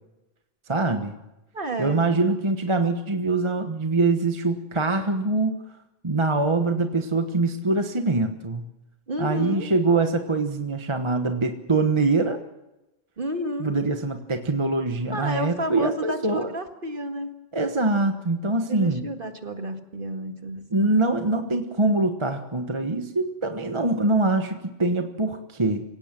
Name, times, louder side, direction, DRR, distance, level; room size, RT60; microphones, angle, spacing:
voice 1, 0.7-1.2 1.8-5.6 6.0-8.6 9.2-12.4 13.6-16.5 17.5-19.1 20.7-25.8, right 3 dB, 25° right, 6 dB, 1.2 m, -24 dB
voice 2, 1.5-2.0 9.1-9.7 13.2-13.7 15.1-17.3 18.7-20.9, equal, 45° right, 5 dB, 2.1 m, -31 dB
26.0 x 17.5 x 7.6 m, 0.97 s
omnidirectional pair, 1.3 m